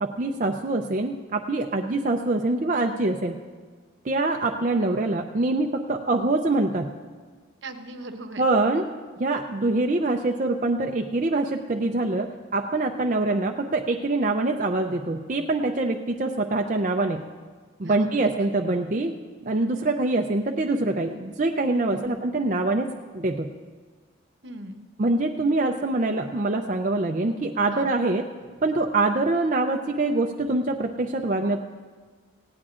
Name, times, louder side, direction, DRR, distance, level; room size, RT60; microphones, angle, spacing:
voice 1, 0.0-3.4 4.0-6.9 8.4-8.9 9.2-17.2 17.8-19.1 19.4-22.9 23.1-23.5 25.0-28.2 28.6-31.6, right 2 dB, 40° right, 3 dB, 0.5 m, -24 dB
voice 2, 7.6-8.5 17.8-18.3 21.9-22.2 24.4-24.9 27.7-27.9, right 2 dB, 65° right, 7 dB, 0.9 m, -39 dB
18.5 x 16.5 x 2.5 m, 1.5 s
head